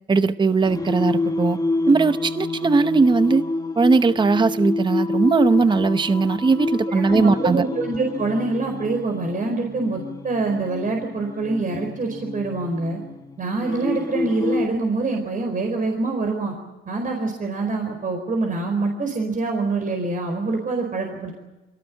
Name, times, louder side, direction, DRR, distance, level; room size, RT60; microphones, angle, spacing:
voice 1, 0.1-1.6 1.9-3.4 3.8-7.6, right 4 dB, 25° right, 12 dB, 0.8 m, -19 dB
Singing, 0.6-14.7, left 3 dB, 20° left, 1.4 m, -28 dB
voice 2, 6.9-13.0 13.4-16.5 16.9-21.3, right 3 dB, 40° right, 3 dB, 4.6 m, -25 dB
23.5 x 18.5 x 8.8 m, 1.1 s
cardioid pair, 90°, 20 cm